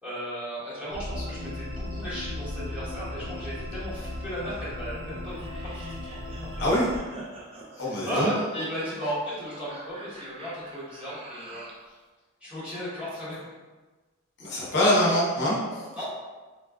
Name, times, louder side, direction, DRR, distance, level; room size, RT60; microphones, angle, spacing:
voice 1, 0.0-6.2 7.8-12.0 12.4-13.5 15.0-15.1 15.7-16.0, equal, 5° right, -11 dB, 1.1 m, -35 dB
sound 1, 0.9-7.0, left 1 dB, 75° right, 0.7 m, -36 dB
sound 2, 5.3-11.8, right 2 dB, 30° right, 0.4 m, -45 dB
voice 2, 7.8-8.3 14.4-16.0, left 1 dB, 60° left, -5 dB, 0.8 m, -24 dB
4.2 x 2.3 x 2.3 m, 1.3 s
head